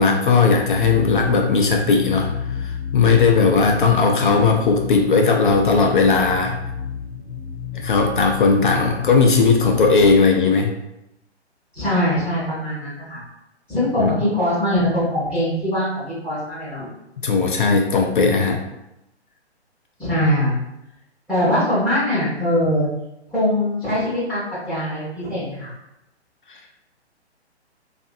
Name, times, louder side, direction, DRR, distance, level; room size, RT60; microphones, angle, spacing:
voice 1, 0.0-2.3 2.6-6.5 7.7-10.7 14.0-14.1 17.2-18.6, left 4 dB, 50° left, 2 dB, 0.4 m, -17 dB
sound 1, 0.6-10.1, left 7 dB, 85° left, 0.7 m, -30 dB
voice 2, 11.7-13.2 13.7-16.8 20.0-20.6 21.3-22.9 23.3-25.7, left 1 dB, 5° right, -14 dB, 0.7 m, -22 dB
2.6 x 2.4 x 2.5 m, 0.88 s
figure-of-eight pair, 130°, 34 cm